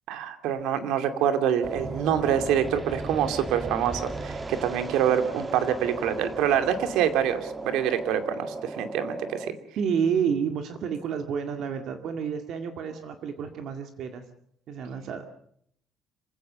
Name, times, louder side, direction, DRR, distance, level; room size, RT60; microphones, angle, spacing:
voice 1, 0.1-9.6, right 9 dB, 90° right, 8 dB, 2.6 m, -26 dB
sound 1, 1.6-9.5, right 3 dB, 15° right, 1.3 m, -36 dB
voice 2, 9.8-14.2 14.7-15.2, right 7 dB, 55° right, 5 dB, 2.0 m, -29 dB
26.0 x 16.5 x 6.9 m, 0.68 s
cardioid pair, 170°, 0 cm